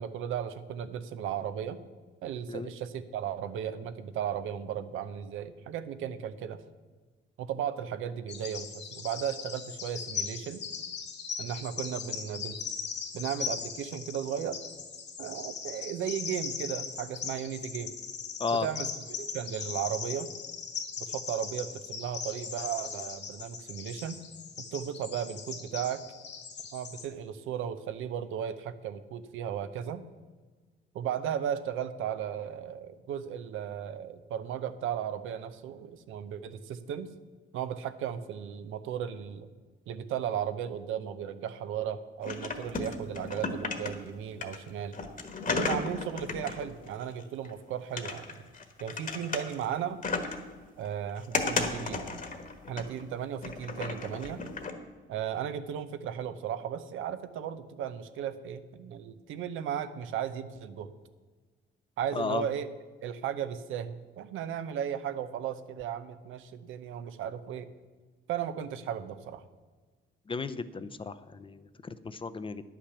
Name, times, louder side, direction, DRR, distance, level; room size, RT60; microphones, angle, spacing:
voice 1, 0.0-1.8 2.2-6.6 7.4-10.6 11.4-12.6 13.1-14.6 15.2-17.9 18.5-18.9 19.2-20.3 21.0-24.2 24.6-26.0 26.7-30.0 30.9-37.1 37.5-39.5 39.9-44.9 45.5-48.3 48.8-50.0 50.8-52.0 52.7-54.4 55.1-60.9 62.0-62.7 63.0-67.7 68.3-69.4, right 9 dB, 85° right, 11 dB, 0.7 m, -35 dB
Bird vocalization bird call bird song, 8.3-27.1, left 6 dB, 60° left, 1.5 m, -39 dB
sound 1, 42.2-44.1 44.4-47.5 48.0-49.7 50.0-50.5 50.8-53.0 53.4-54.7, left 4 dB, 40° left, 1.4 m, -34 dB
voice 2, 62.1-62.5 70.3-72.6, left 4 dB, 25° left, 13 dB, 0.6 m, -34 dB
10.0 x 6.0 x 8.1 m, 1.4 s
cardioid pair, 90°, 20 cm